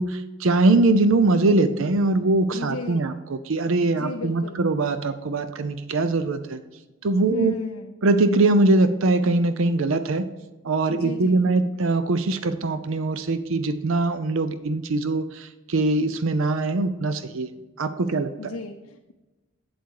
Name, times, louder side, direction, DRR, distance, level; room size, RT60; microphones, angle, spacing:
voice 1, 0.0-6.6 7.0-7.5 8.0-10.3 10.6-17.5 17.8-18.5, right 2 dB, 65° right, 11 dB, 0.6 m, -22 dB
voice 2, 2.5-3.1 3.8-4.6 7.2-7.9 10.9-11.4 18.4-19.1, left 3 dB, 75° left, 4 dB, 0.6 m, -34 dB
8.2 x 8.0 x 4.7 m, 1.1 s
head